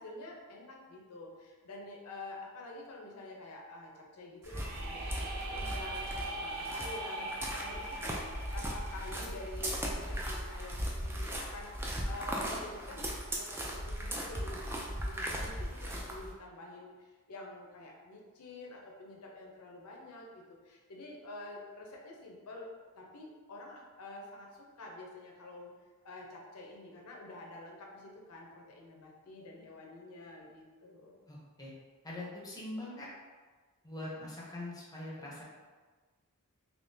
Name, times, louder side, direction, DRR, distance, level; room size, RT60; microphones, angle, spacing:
voice 1, 0.0-13.1 13.3-22.7 23.0-25.7 26.0-31.2, left 2 dB, 80° left, -1 dB, 0.7 m, -48 dB
sound 1, 4.4-16.3, equal, 10° right, 0.4 m, -38 dB
sound 2, 4.4-10.3, right 2 dB, 80° right, 0.5 m, -41 dB
voice 2, 31.3-31.7 32.0-33.1 33.8-35.4, left 1 dB, 15° left, -5 dB, 0.7 m, -42 dB
3.6 x 2.9 x 2.7 m, 1.4 s
head